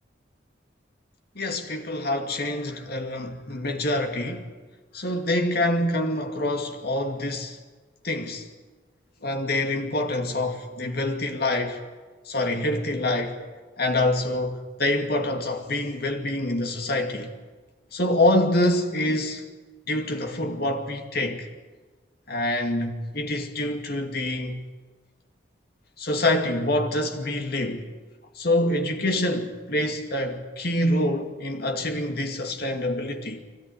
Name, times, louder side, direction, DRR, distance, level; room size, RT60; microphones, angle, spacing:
voice 1, 1.4-4.4 4.9-7.6 8.0-8.5 9.2-11.8 12.3-13.4 13.8-17.3 17.9-19.5 19.9-21.5 22.3-24.6 26.0-27.9 28.4-33.4, left 1 dB, 55° left, 2.4 m, -26 dB
23.5 x 17.0 x 9.8 m
head